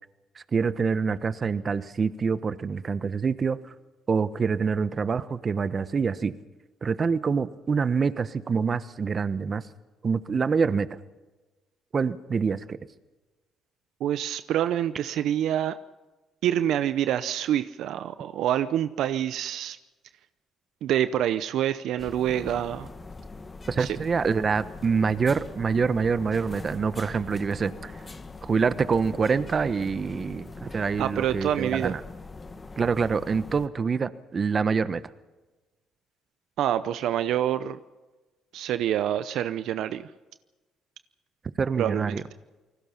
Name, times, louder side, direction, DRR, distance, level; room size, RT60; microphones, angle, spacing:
voice 1, 0.5-3.6 4.1-6.3 6.8-9.6 10.0-10.9 11.9-12.8 23.7-27.9 28.4-32.0 32.8-35.0 41.6-42.2, right 5 dB, 40° right, 13 dB, 1.2 m, -26 dB
voice 2, 14.0-15.8 16.4-19.8 20.8-22.9 23.8-24.0 31.0-31.9 36.6-37.8 38.5-40.1 41.8-42.2, right 11 dB, 75° right, 12 dB, 0.7 m, -26 dB
sound 1, 22.0-33.7, left 3 dB, 30° left, 2.0 m, -42 dB
28.5 x 19.5 x 5.8 m, 1.2 s
supercardioid pair, 70°, 0 cm